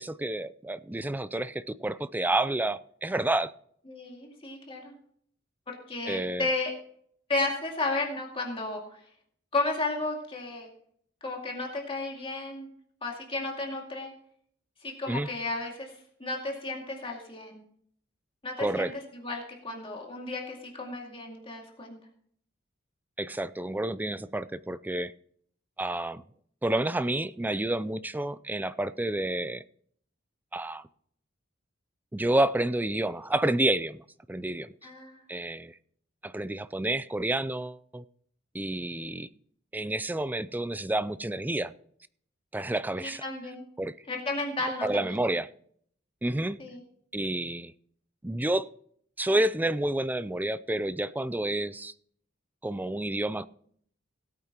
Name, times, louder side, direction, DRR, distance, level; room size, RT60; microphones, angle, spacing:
voice 1, 0.0-3.5 6.1-6.5 15.1-15.3 18.6-18.9 23.2-25.1 25.8-26.2 26.6-29.6 30.5-30.8 32.1-34.0 34.3-34.7 35.3-35.8 36.2-38.0 38.5-39.3 39.7-41.7 42.5-43.2 43.8-43.9 44.8-45.5 46.2-46.6 47.1-47.7 48.2-48.7 49.2-51.9 52.6-53.5, right 1 dB, 10° right, 0.4 m, -29 dB
voice 2, 3.9-4.9 5.7-6.7 7.3-9.0 9.5-10.7 11.2-12.7 13.0-14.1 14.8-15.9 16.2-17.6 18.4-22.0 34.8-35.2 43.0-43.6 44.1-45.2 46.6-46.8, left 2 dB, 30° left, 2.2 m, -33 dB
17.5 x 8.6 x 3.0 m
head